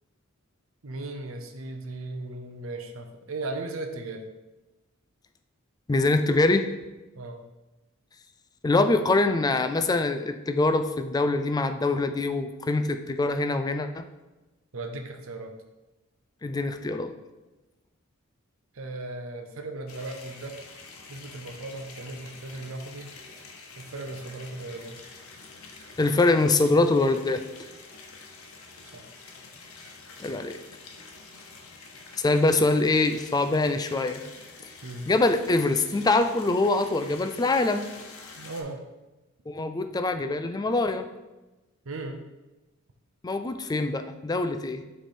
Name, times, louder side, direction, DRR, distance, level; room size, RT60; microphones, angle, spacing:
voice 1, 0.8-4.3 7.2-7.5 14.7-15.5 18.7-20.7 21.1-23.1 23.8-25.0 28.9-29.1 34.8-35.1 38.4-38.8 41.9-42.2, right 2 dB, 70° right, 5 dB, 0.7 m, -37 dB
voice 2, 5.9-6.7 8.6-14.0 16.4-17.1 26.0-27.4 30.2-30.6 32.2-34.2 35.1-37.8 39.5-41.1 43.2-44.8, left 2 dB, 20° left, 8 dB, 0.3 m, -24 dB
sound 1, 19.9-38.6, left 4 dB, 85° left, 0.9 m, -47 dB
7.7 x 3.3 x 4.2 m, 1.1 s
head